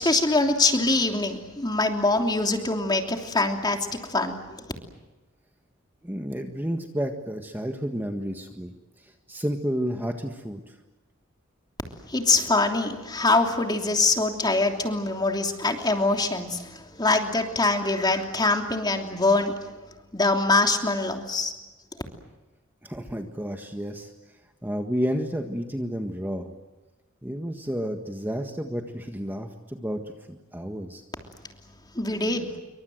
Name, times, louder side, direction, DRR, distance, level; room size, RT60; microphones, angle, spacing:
voice 1, 0.0-4.6 12.1-19.6 20.1-21.5 31.9-32.5, left 3 dB, 20° left, 4 dB, 3.1 m, -24 dB
voice 2, 6.0-10.8 22.8-24.1 24.6-26.5 27.2-31.0, equal, 10° right, 4 dB, 1.6 m, -31 dB
27.5 x 24.5 x 7.9 m, 1.2 s
head